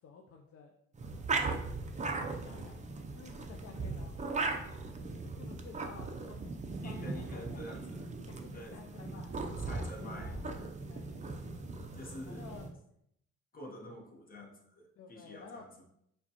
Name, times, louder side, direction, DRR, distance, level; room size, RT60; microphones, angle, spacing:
voice 1, 0.0-0.7 2.3-2.8 3.1-4.2 4.6-4.8 5.2-6.4 6.7-7.7 8.3-10.4 10.8-11.2 12.2-12.7 15.0-15.6, left 5 dB, 50° left, 2 dB, 0.5 m, -52 dB
sound 1, 0.9-12.7, right 3 dB, 25° right, 0.4 m, -38 dB
voice 2, 6.8-8.1 8.5-8.8 9.6-10.4 11.9-12.5 13.5-15.8, left 1 dB, 30° left, 1 dB, 0.9 m, -48 dB
4.9 x 2.3 x 2.8 m, 0.75 s
cardioid pair, 90°, 30 cm